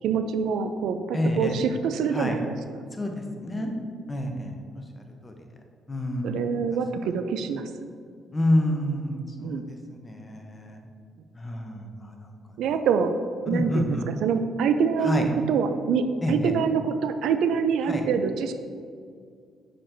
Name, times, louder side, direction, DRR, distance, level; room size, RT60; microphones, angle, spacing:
voice 1, 0.0-2.5 3.5-3.8 6.2-7.7 9.4-9.7 12.6-13.2 13.5-18.5, right 6 dB, 80° right, 9 dB, 0.3 m, -25 dB
voice 2, 1.1-1.6 2.1-2.3 3.0-3.7 4.1-4.5 5.2-5.3 5.9-6.4 8.3-10.8 11.4-12.3 13.5-14.1 15.0-15.2 16.2-16.5 17.9-18.0, left 1 dB, 20° left, 3 dB, 0.7 m, -28 dB
6.5 x 5.9 x 2.6 m, 2.2 s
cardioid pair, 90°, 0 cm